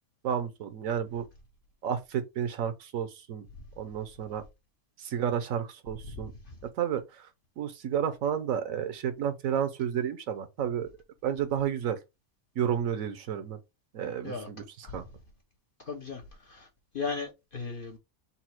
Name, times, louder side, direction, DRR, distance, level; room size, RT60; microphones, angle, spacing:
voice 1, 0.2-1.3 1.8-3.5 3.8-4.4 5.0-6.3 6.6-7.3 7.6-10.9 11.2-12.0 12.6-13.6 13.9-15.0, right 8 dB, 70° right, 1.0 m, -31 dB
voice 2, 15.9-16.7 16.9-18.0, left 4 dB, 50° left, 0.7 m, -37 dB
4.1 x 2.3 x 4.2 m
omnidirectional pair, 1.5 m